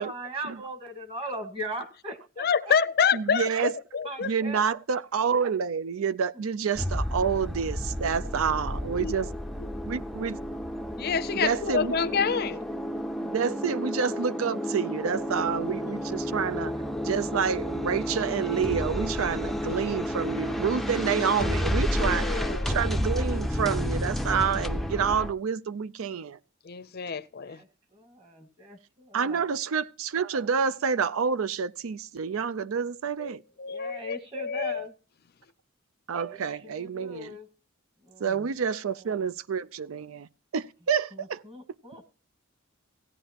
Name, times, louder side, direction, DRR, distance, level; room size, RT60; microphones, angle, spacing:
voice 1, 0.0-2.7 4.0-4.6 8.2-8.6 12.0-12.5 27.4-29.4 33.7-34.9 36.2-37.5 38.0-38.5 41.1-42.2, right 1 dB, 25° right, 1.6 m, -40 dB
voice 2, 2.4-4.3 9.0-9.1 9.6-9.7 11.0-12.6 15.5-15.7 22.0-22.7 26.6-27.6 33.2-33.3 33.6-34.8, left 6 dB, 50° left, 0.5 m, -28 dB
voice 3, 3.1-3.8 4.2-9.3 9.9-10.4 11.3-12.0 13.2-26.4 29.1-33.4 36.1-37.4 38.2-41.4, right 6 dB, 85° right, 0.5 m, -28 dB
sound 1, 6.8-25.3, equal, ahead, 0.5 m, -31 dB
17.0 x 9.8 x 2.9 m
head